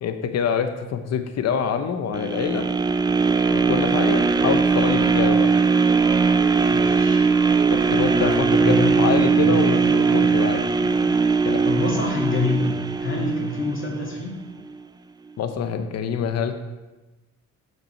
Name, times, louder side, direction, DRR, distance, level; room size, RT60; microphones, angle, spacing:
voice 1, 0.0-2.7 3.5-5.5 7.7-8.3 8.6-11.6 15.4-16.6, left 7 dB, 60° left, 8 dB, 0.7 m, -26 dB
sound 1, 2.1-14.2 14.7-14.8, right 5 dB, 15° right, 0.3 m, -20 dB
voice 2, 6.7-7.3 8.1-9.8 10.1-10.3 11.7-14.4, left 3 dB, 40° left, -1 dB, 2.1 m, -27 dB
7.8 x 5.1 x 4.4 m, 1.1 s
cardioid pair, 90°, 30 cm